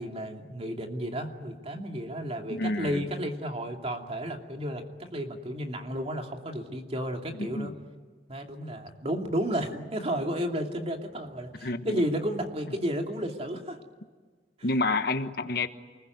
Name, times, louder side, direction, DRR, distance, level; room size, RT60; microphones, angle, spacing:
voice 1, 0.0-7.7 8.3-13.8, equal, 35° right, 3 dB, 2.7 m, -32 dB
voice 2, 2.5-3.0 7.4-7.7 11.6-12.0 14.6-15.7, left 2 dB, 60° left, 9 dB, 1.3 m, -29 dB
28.0 x 20.5 x 9.5 m, 1.5 s
head